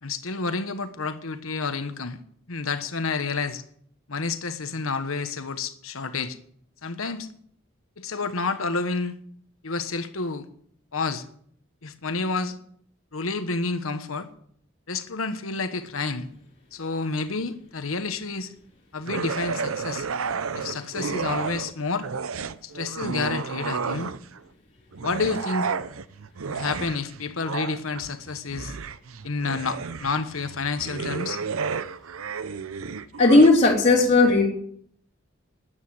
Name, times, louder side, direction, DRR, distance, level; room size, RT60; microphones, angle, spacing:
voice 1, 0.0-2.2 2.5-3.6 4.1-6.4 6.8-7.3 8.0-9.2 9.6-10.5 10.9-11.3 11.8-12.5 13.1-14.3 14.9-16.3 16.7-18.5 18.9-20.1 20.5-22.1 22.6-24.1 25.0-25.7 26.5-28.8 29.2-31.4, left 4 dB, 85° left, 9 dB, 1.2 m, -29 dB
sound 1, 19.1-21.7 22.0-24.4 24.9-33.5, right 5 dB, 90° right, 0.7 m, -32 dB
voice 2, 33.2-34.5, left 2 dB, 30° left, -3 dB, 3.6 m, -16 dB
13.0 x 9.6 x 7.8 m, 0.62 s
head